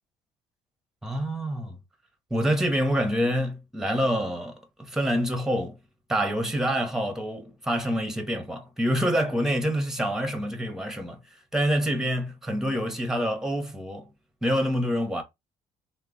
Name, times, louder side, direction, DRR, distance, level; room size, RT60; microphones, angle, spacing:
voice 1, 1.0-1.8 2.3-5.8 6.1-11.2 11.5-14.1 14.4-15.2, equal, 5° right, 1.0 m, -26 dB
2.9 x 2.2 x 3.7 m
cardioid pair, 85°, 15 cm